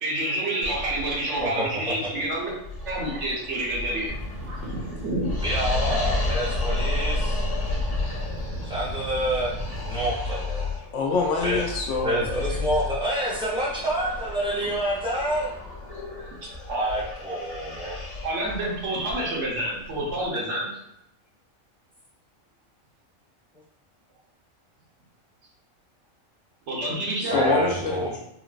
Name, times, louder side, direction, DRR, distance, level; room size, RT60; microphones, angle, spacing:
voice 1, 0.0-2.5 2.8-4.1 4.4-5.3 11.0-11.1 15.9-16.9 18.2-20.7 26.7-27.6, right 1 dB, 65° right, -4 dB, 1.1 m, -28 dB
sound 1, 0.6-20.3, left 2 dB, 40° left, 0.8 m, -32 dB
voice 2, 1.4-1.9 5.4-7.5 8.6-9.6 9.8-10.7 11.4-11.6 12.0-15.5 16.7-17.9 27.3-28.1, right 1 dB, 5° right, -7 dB, 0.6 m, -28 dB
sound 2, 4.1-10.1, right 1 dB, 40° right, 0.9 m, -36 dB
voice 3, 10.9-12.5 27.2-28.2, left 4 dB, 70° left, 0 dB, 0.9 m, -26 dB
3.8 x 2.0 x 2.4 m, 0.81 s
omnidirectional pair, 1.4 m